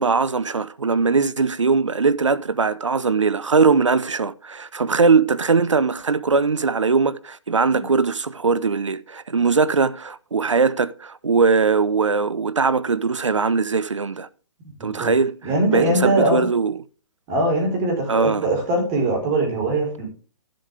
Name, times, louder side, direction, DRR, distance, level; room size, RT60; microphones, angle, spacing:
voice 1, 0.0-14.3 14.8-15.3 15.7-16.7 18.1-18.5, right 4 dB, 85° right, 0.5 m, -20 dB
voice 2, 14.8-15.1 15.4-16.5 17.3-20.1, right 2 dB, 30° right, 4.3 m, -21 dB
12.5 x 7.6 x 3.4 m
figure-of-eight pair, 125°, 15 cm